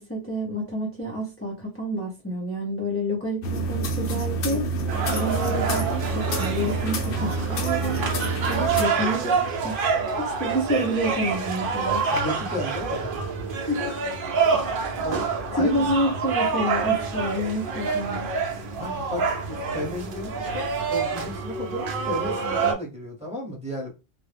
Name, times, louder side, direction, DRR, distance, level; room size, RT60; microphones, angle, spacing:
voice 1, 0.0-4.7 5.1-8.0 8.5-9.9 10.2-12.0 13.7-14.0 14.5-14.6 15.6-18.3, equal, 15° left, 0.5 m, -28 dB
sound 1, 3.4-8.8, right 3 dB, 70° left, 0.7 m, -28 dB
sound 2, 4.9-22.7, right 5 dB, 60° right, 0.7 m, -27 dB
voice 2, 12.1-13.3 14.9-15.2 15.5-16.0 18.8-23.9, left 1 dB, 5° right, 0.9 m, -34 dB
2.3 x 2.0 x 3.2 m
omnidirectional pair, 1.1 m